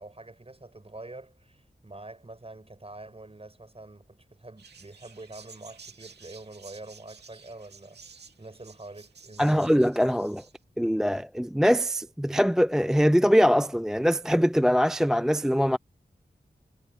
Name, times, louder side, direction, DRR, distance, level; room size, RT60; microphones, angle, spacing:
voice 1, 0.0-9.7, right 2 dB, 35° right, 6.3 m, -46 dB
sound 1, 4.6-10.5, right 5 dB, 90° right, 2.3 m, -52 dB
voice 2, 9.4-10.4 10.8-15.8, equal, 5° right, 0.3 m, -22 dB
cardioid pair, 40°, 17 cm